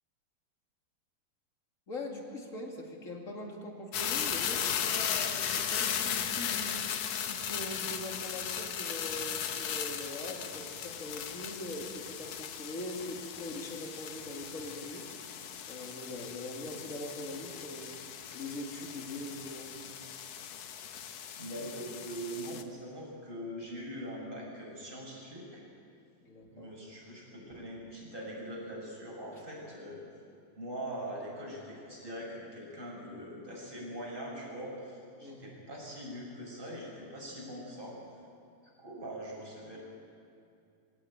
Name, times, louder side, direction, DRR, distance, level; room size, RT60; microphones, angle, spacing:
voice 1, 1.9-7.0 7.2-15.4 15.7-18.0 18.3-19.7 26.2-26.7 29.3-29.4 35.2-35.6, left 1 dB, 25° left, 1 dB, 2.2 m, -42 dB
sound 1, 3.9-22.6, left 8 dB, 65° left, 1.6 m, -37 dB
voice 2, 21.4-25.6 26.5-30.0 30.5-38.0 38.8-39.8, right 1 dB, 15° right, -3 dB, 6.1 m, -42 dB
22.0 x 17.0 x 8.8 m, 2.5 s
omnidirectional pair, 4.2 m